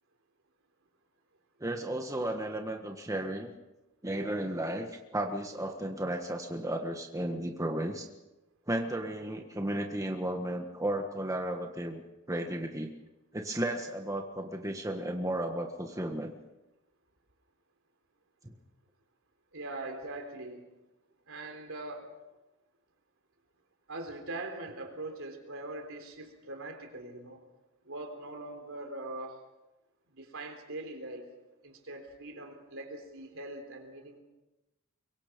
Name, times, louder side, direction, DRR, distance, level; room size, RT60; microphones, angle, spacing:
voice 1, 1.6-3.5 4.0-8.1 8.7-12.0 12.3-12.9 13.3-16.3 18.4-18.5, right 1 dB, 15° right, 3 dB, 1.5 m, -34 dB
voice 2, 19.5-20.6 21.3-22.1 23.9-27.4 27.8-29.4 30.2-31.3 31.6-34.2, right 2 dB, 65° right, 5 dB, 3.7 m, -42 dB
24.0 x 24.0 x 5.3 m, 1.0 s
head